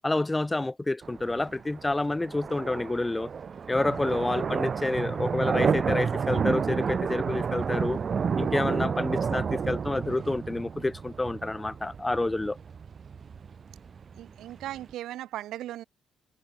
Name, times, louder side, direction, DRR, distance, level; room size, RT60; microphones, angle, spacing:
voice 1, 0.0-3.3 3.7-8.0 8.4-12.6, left 2 dB, 15° left, 1.1 m, -28 dB
sound 1, 1.0-14.9, right 6 dB, 45° right, 2.1 m, -31 dB
voice 2, 14.2-15.8, right 13 dB, 85° right, 2.6 m, -37 dB
cardioid pair, 90°, 0 cm